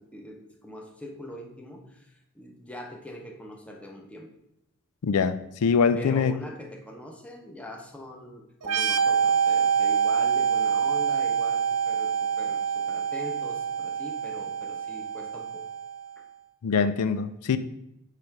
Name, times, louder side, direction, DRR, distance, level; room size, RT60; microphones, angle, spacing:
voice 1, 0.0-4.3 5.9-15.7 16.2-16.3, left 1 dB, 5° left, 1 dB, 0.9 m, -42 dB
voice 2, 5.0-6.3 16.6-17.6, left 5 dB, 80° left, 12 dB, 0.4 m, -23 dB
sound 1, 8.6-16.1, right 7 dB, 85° right, 0.6 m, -26 dB
8.3 x 3.3 x 5.9 m, 0.84 s
head